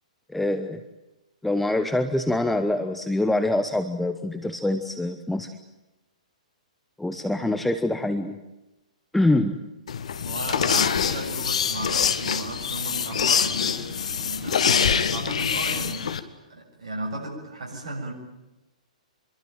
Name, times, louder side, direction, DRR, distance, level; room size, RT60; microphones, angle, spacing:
voice 1, 0.3-0.8 1.4-5.5 7.0-8.4 9.1-9.5, left 1 dB, 5° left, 8 dB, 1.0 m, -25 dB
sound 1, 9.9-16.2, left 7 dB, 60° left, 1.7 m, -25 dB
voice 2, 10.2-16.1 16.5-18.1, right 2 dB, 55° right, -1 dB, 7.3 m, -35 dB
26.5 x 22.5 x 9.2 m, 0.99 s
figure-of-eight pair, 115°, 4 cm